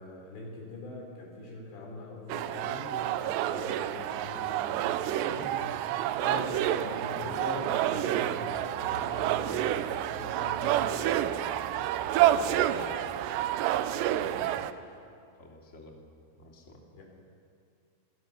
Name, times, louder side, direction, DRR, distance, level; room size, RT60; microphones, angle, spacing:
voice 1, 0.0-11.5 14.2-15.0 16.9-17.0, left 3 dB, 60° left, -1 dB, 6.6 m, -42 dB
sound 1, 2.3-14.7, right 12 dB, 85° right, 2.5 m, -29 dB
voice 2, 12.0-13.1 15.4-16.0 16.4-16.8, left 2 dB, 25° left, 0 dB, 1.6 m, -48 dB
28.0 x 20.0 x 7.0 m, 2.5 s
omnidirectional pair, 5.8 m